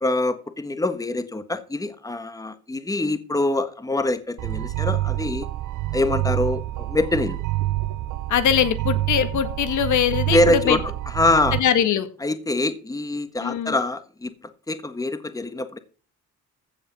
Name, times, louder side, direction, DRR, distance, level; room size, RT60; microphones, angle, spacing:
voice 1, 0.0-5.5 5.9-7.4 10.3-10.8 11.1-11.6 12.2-14.3 14.7-15.8, left 2 dB, 10° left, 11 dB, 1.4 m, -24 dB
sound 1, 4.4-11.6, right 16 dB, 80° right, 0.7 m, -27 dB
voice 2, 8.3-10.8 11.5-12.1 13.4-13.7, left 9 dB, 75° left, 10 dB, 1.8 m, -22 dB
15.5 x 5.4 x 7.0 m, 0.39 s
cardioid pair, 90°, 30 cm